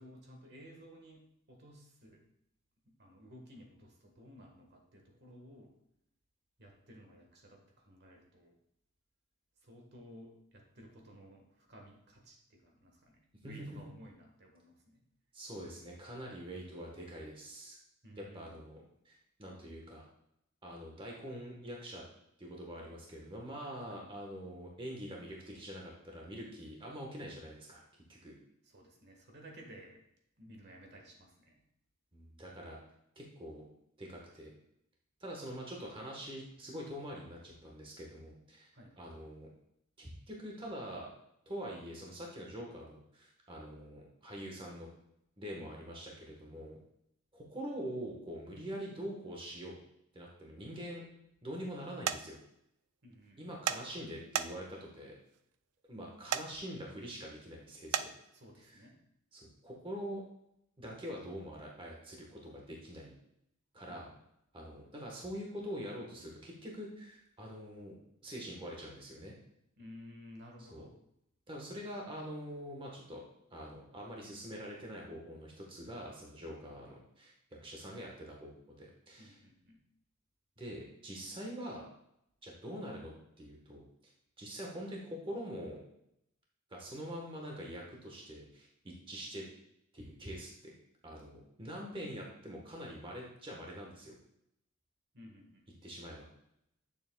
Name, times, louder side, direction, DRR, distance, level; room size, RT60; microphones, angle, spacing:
voice 1, 0.0-2.2 2.8-5.7 6.6-8.6 9.6-15.0 18.0-18.6 23.9-24.1 28.6-30.0 30.4-31.6 37.5-37.6 38.7-39.0 45.6-45.7 53.0-53.5 58.3-59.0 63.9-64.0 69.8-70.9 76.7-76.8 79.2-79.8 95.1-95.8, equal, 50° right, 2 dB, 1.3 m, -55 dB
voice 2, 13.4-13.8 15.3-17.7 18.2-20.1 20.6-22.0 22.4-27.8 28.1-28.3 32.1-32.8 33.2-33.6 34.0-34.5 35.2-38.7 39.0-39.5 40.0-41.1 41.5-44.9 45.4-46.8 47.3-49.8 50.1-51.0 51.4-52.4 53.4-55.2 55.9-58.1 58.6-58.8 59.3-60.2 60.8-63.1 63.7-64.1 64.5-68.0 68.2-69.3 70.6-70.8 71.5-73.2 73.5-77.3 77.6-79.4 80.6-81.8 82.4-83.8 84.4-85.8 86.7-89.4 89.9-90.7 91.0-94.2 95.8-96.3, equal, 25° right, -1 dB, 1.1 m, -44 dB
sound 1, 52.1-52.2 53.7-53.8 54.3-54.8 56.3-56.5 57.9-58.1, right 9 dB, 80° right, 0.4 m, -31 dB
8.5 x 7.0 x 2.2 m, 0.78 s
head